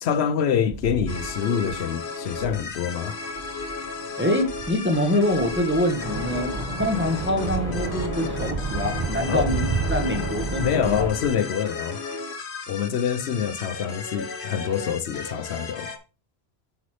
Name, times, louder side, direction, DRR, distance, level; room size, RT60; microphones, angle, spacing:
voice 1, 0.0-3.2 9.3-9.5 10.6-12.0 12.7-15.9, left 8 dB, 80° left, 0.9 m, -26 dB
sound 1, 0.7-11.4, right 5 dB, 45° right, 0.4 m, -33 dB
sound 2, 1.1-16.0, left 4 dB, 60° left, 1.2 m, -35 dB
voice 2, 4.2-6.5 6.8-11.1, left 1 dB, 10° right, 1.3 m, -25 dB
sound 3, 6.0-11.1, right 1 dB, 25° right, 1.6 m, -32 dB
8.0 x 6.3 x 3.2 m
omnidirectional pair, 1.1 m